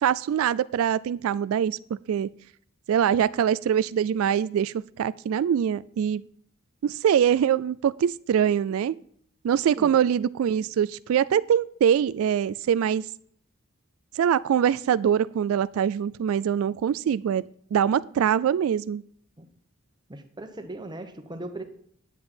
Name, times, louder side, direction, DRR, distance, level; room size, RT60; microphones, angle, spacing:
voice 1, 0.0-1.8 2.1-2.3 2.9-6.2 6.8-9.0 9.4-13.1 14.1-17.4 17.7-19.0, right 8 dB, 85° right, 16 dB, 0.3 m, -23 dB
voice 2, 20.1-21.6, right 1 dB, 20° right, 7 dB, 1.0 m, -38 dB
9.8 x 8.4 x 4.3 m, 0.63 s
head